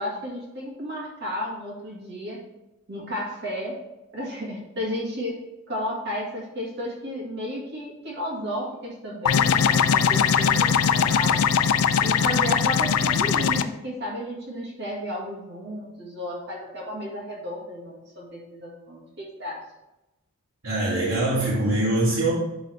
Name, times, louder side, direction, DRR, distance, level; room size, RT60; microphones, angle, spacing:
voice 1, 0.0-2.4 2.9-3.8 4.1-5.4 5.7-11.4 12.0-19.6, equal, 50° right, -3 dB, 1.8 m, -33 dB
sound 1, 9.3-13.6, left 7 dB, 75° left, 0.4 m, -20 dB
voice 2, 20.6-22.3, right 1 dB, 75° right, -9 dB, 2.2 m, -23 dB
11.0 x 3.9 x 3.3 m, 0.97 s
head